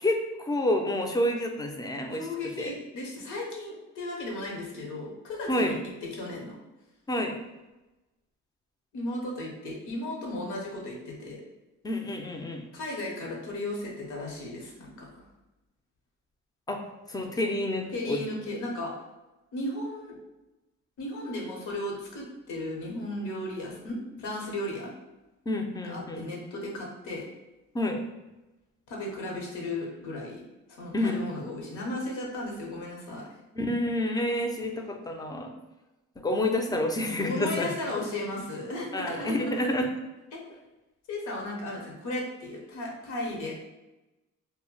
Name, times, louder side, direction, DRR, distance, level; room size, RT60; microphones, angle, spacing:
voice 1, 0.0-2.7 5.5-5.7 7.1-7.4 11.8-12.6 16.7-16.8 17.1-18.2 25.5-26.3 27.7-28.0 30.9-31.3 33.5-35.5 36.2-37.7 38.9-39.9, left 1 dB, 15° left, 3 dB, 0.3 m, -29 dB
voice 2, 2.1-5.8 6.0-6.6 8.9-11.4 12.7-15.2 17.9-18.9 19.5-20.1 21.0-24.9 25.8-27.2 28.9-30.4 30.8-33.3 37.2-39.7 40.3-40.4 41.1-43.5, left 1 dB, 80° left, -1 dB, 0.8 m, -35 dB
2.1 x 2.1 x 3.8 m, 1.0 s
cardioid pair, 90°, 30 cm